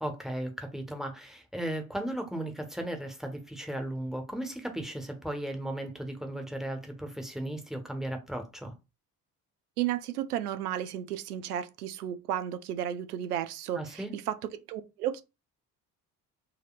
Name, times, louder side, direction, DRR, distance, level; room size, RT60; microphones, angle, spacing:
voice 1, 0.0-8.7 13.7-14.1, right 1 dB, ahead, 1.0 m, -36 dB
voice 2, 9.8-14.4 14.7-15.2, right 11 dB, 85° right, 0.5 m, -33 dB
4.0 x 2.6 x 2.3 m
figure-of-eight pair, 45°, 45 cm